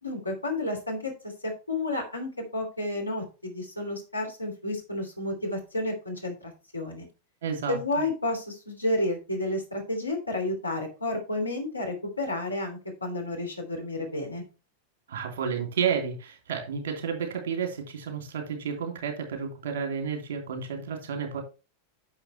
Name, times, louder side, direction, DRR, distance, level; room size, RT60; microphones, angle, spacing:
voice 1, 0.0-7.1 7.7-14.4, left 2 dB, 80° left, 3.0 m, -31 dB
voice 2, 7.4-7.8 15.1-21.4, right 6 dB, 60° right, 2.9 m, -31 dB
9.9 x 6.6 x 3.3 m
figure-of-eight pair, 90°, 0 cm